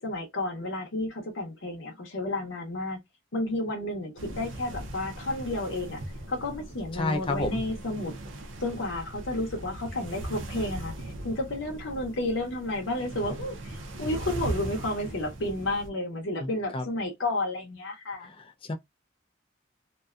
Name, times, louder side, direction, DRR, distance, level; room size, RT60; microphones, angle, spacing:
voice 1, 0.0-3.0 3.3-8.1 8.6-18.3, left 1 dB, 75° left, 0.8 m, -32 dB
sound 1, 4.2-15.9, right 1 dB, 75° right, 0.6 m, -39 dB
voice 2, 7.0-7.6 16.4-16.8 18.2-18.7, left 2 dB, 25° left, 0.4 m, -31 dB
2.6 x 2.3 x 2.3 m
head